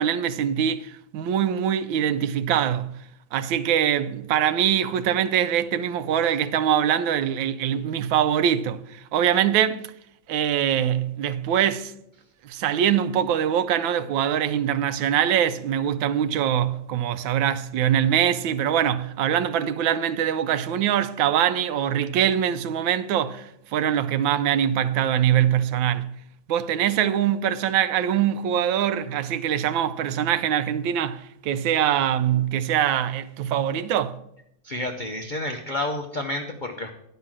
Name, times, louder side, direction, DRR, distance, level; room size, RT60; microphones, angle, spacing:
voice 1, 0.0-3.0 3.3-9.8 10.3-11.9 12.4-26.2 26.5-34.2, right 9 dB, 85° right, 1.4 m, -23 dB
voice 2, 34.6-36.9, left 1 dB, 75° left, 0.4 m, -30 dB
10.5 x 5.6 x 7.4 m
omnidirectional pair, 2.1 m